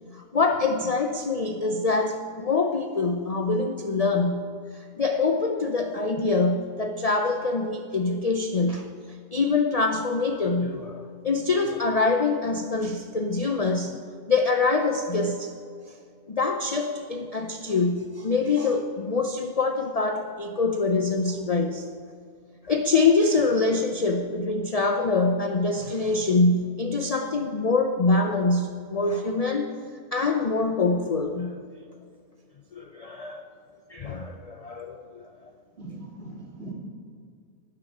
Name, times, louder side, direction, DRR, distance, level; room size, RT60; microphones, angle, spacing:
voice 1, 0.1-4.5 5.0-8.9 9.3-14.0 14.3-15.5 16.3-21.9 22.6-29.7 30.1-31.6 32.7-33.4 33.9-35.3, left 3 dB, 40° left, 4 dB, 0.5 m, -25 dB
voice 2, 35.8-36.7, right 2 dB, 50° right, -3 dB, 3.1 m, -40 dB
12.0 x 6.4 x 9.0 m, 2.2 s
omnidirectional pair, 1.4 m